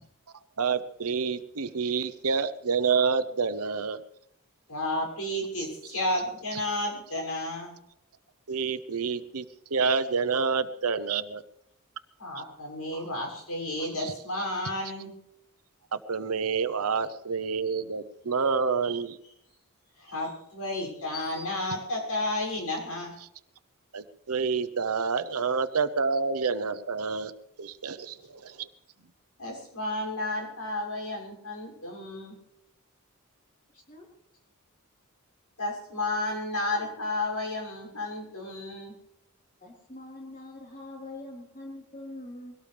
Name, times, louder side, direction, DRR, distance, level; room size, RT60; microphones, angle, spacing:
voice 1, 0.6-4.0 8.5-9.5 9.7-11.4 12.9-13.0 14.0-14.1 15.9-19.2 23.9-27.3 27.6-28.7, right 5 dB, 80° right, 12 dB, 0.9 m, -28 dB
voice 2, 4.7-7.7 12.2-15.1 20.0-23.1 29.4-32.3 35.6-38.9, left 1 dB, 80° left, 0 dB, 6.7 m, -32 dB
voice 3, 33.7-34.1 39.6-42.6, left 2 dB, 35° left, -2 dB, 4.3 m, -43 dB
23.0 x 17.5 x 3.4 m, 0.80 s
head